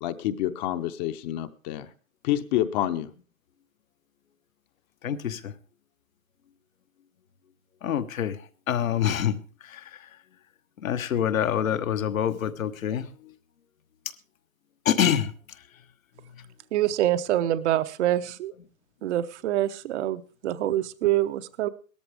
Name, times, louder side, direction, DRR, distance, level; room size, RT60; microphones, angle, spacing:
voice 1, 0.0-1.9 2.2-3.1, left 12 dB, 35° left, 9 dB, 0.8 m, -28 dB
voice 2, 5.0-5.5 7.8-8.4 8.7-9.3 10.8-13.0 14.8-15.3, left 9 dB, 80° left, 10 dB, 1.3 m, -25 dB
voice 3, 16.7-18.5 19.0-21.7, right 13 dB, 60° right, 13 dB, 0.9 m, -25 dB
18.0 x 13.5 x 3.5 m, 0.39 s
hypercardioid pair, 135°, 40 cm